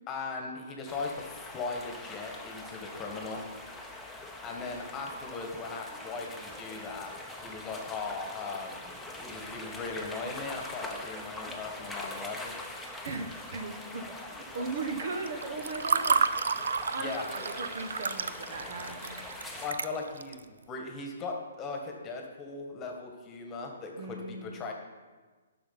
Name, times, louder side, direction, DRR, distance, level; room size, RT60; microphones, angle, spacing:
voice 1, 0.1-3.4 4.4-7.1 7.4-12.5 17.0-17.5 19.6-24.7, left 4 dB, 20° left, 2 dB, 1.5 m, -38 dB
sound 1, 0.9-19.7, left 2 dB, ahead, 0.9 m, -43 dB
voice 2, 13.0-16.2 16.9-19.2 24.0-24.6, right 3 dB, 55° right, 5 dB, 1.2 m, -38 dB
Water / Fill (with liquid), 15.3-20.4, right 5 dB, 75° right, 0.4 m, -30 dB
10.5 x 6.1 x 5.8 m, 1.4 s
hypercardioid pair, 135°, 0 cm